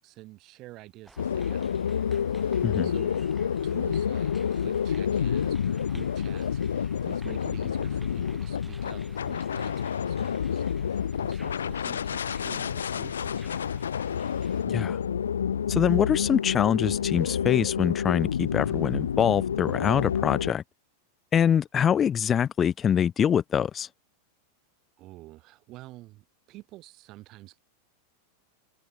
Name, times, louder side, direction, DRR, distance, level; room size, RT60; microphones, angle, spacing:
voice 1, 0.0-1.8 2.8-3.2 3.6-13.8 25.0-27.6, right 18 dB, 40° right, 2.5 m, -48 dB
sound 1, 1.0-14.6, right 1 dB, 5° right, 3.8 m, -54 dB
sound 2, 1.2-20.5, left 8 dB, 70° left, 0.4 m, -29 dB
voice 2, 14.7-15.0 15.7-20.6 21.3-23.9, left 8 dB, 25° left, 0.6 m, -24 dB
figure-of-eight pair, 90°, 0 cm